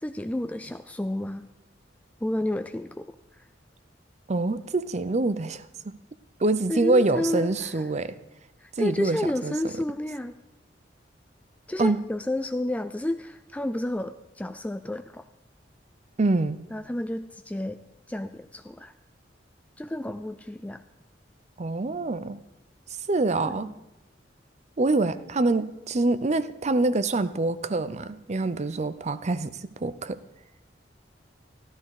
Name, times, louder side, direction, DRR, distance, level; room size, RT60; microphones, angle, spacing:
voice 1, 0.0-1.5 2.2-3.4 6.7-7.9 8.6-10.4 11.7-15.2 16.7-17.8 18.1-18.9 19.8-20.8 23.4-23.8, left 1 dB, 10° left, 9 dB, 0.4 m, -31 dB
voice 2, 4.3-5.9 6.4-8.1 8.8-9.5 11.8-12.0 16.2-16.6 21.6-22.4 23.1-23.7 24.8-30.2, right 2 dB, 40° right, 14 dB, 0.6 m, -25 dB
14.0 x 13.0 x 4.9 m, 0.94 s
head